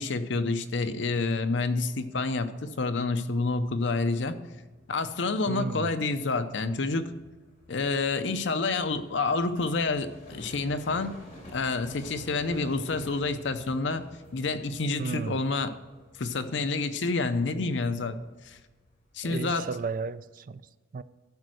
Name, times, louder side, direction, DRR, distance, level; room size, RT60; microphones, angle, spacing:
voice 1, 0.0-4.4 4.9-7.1 7.7-11.2 11.5-14.0 14.3-15.7 16.2-18.2 18.5-18.6 19.1-19.7, left 3 dB, 65° left, 9 dB, 0.6 m, -28 dB
sound 1, 3.6-20.0, left 1 dB, 35° left, 3.6 m, -51 dB
voice 2, 5.5-5.9 15.0-15.4 19.2-20.6 20.9-21.0, right 4 dB, 45° right, 14 dB, 0.4 m, -33 dB
12.0 x 5.2 x 6.3 m, 1.3 s
head